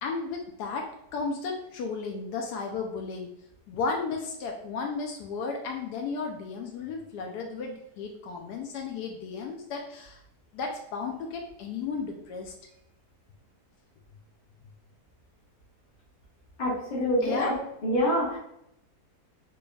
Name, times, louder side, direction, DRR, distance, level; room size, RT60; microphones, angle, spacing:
voice 1, 0.0-3.3 3.7-10.2 10.5-12.5 17.2-17.5, left 4 dB, 80° left, 2 dB, 1.1 m, -34 dB
voice 2, 16.6-17.6 17.8-18.4, equal, 30° left, -6 dB, 1.2 m, -26 dB
4.3 x 3.2 x 2.3 m, 0.77 s
omnidirectional pair, 1.8 m